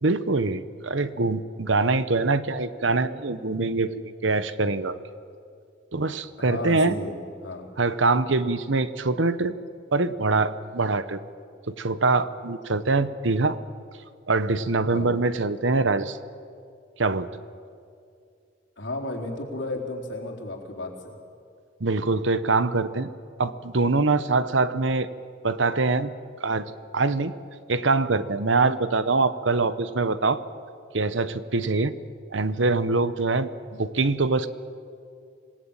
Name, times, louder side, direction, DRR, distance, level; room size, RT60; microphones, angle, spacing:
voice 1, 0.0-5.0 5.9-7.0 7.8-9.5 9.9-11.2 11.7-13.6 14.3-16.2 17.0-17.3 21.8-23.1 23.4-25.1 25.4-26.1 26.4-26.6 26.9-27.3 27.7-30.4 30.9-31.9 32.3-34.5, right 3 dB, 70° right, 13 dB, 1.0 m, -24 dB
voice 2, 6.4-7.7 14.9-15.1 18.8-21.2, left 2 dB, 65° left, 1 dB, 4.1 m, -33 dB
26.5 x 18.5 x 9.0 m, 2.3 s
head